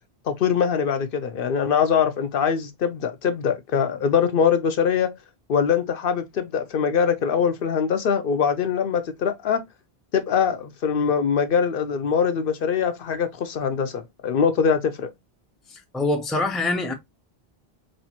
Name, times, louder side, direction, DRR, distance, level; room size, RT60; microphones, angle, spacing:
voice 1, 0.2-5.1 5.5-9.6 10.1-15.1, left 7 dB, 65° left, 0.7 m, -23 dB
voice 2, 15.7-16.9, left 2 dB, ahead, 0.5 m, -25 dB
4.3 x 2.7 x 2.8 m
omnidirectional pair, 1.1 m